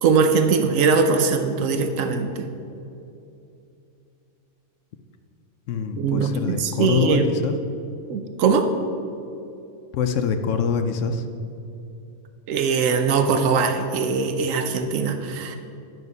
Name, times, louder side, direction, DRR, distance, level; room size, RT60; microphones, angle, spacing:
voice 1, 0.0-2.5 5.9-7.3 8.1-8.7 12.5-15.6, right 5 dB, 90° right, 7 dB, 1.0 m, -21 dB
voice 2, 5.7-7.5 9.9-11.2, left 6 dB, 75° left, 7 dB, 0.9 m, -24 dB
11.0 x 5.7 x 5.4 m, 2.7 s
omnidirectional pair, 1.3 m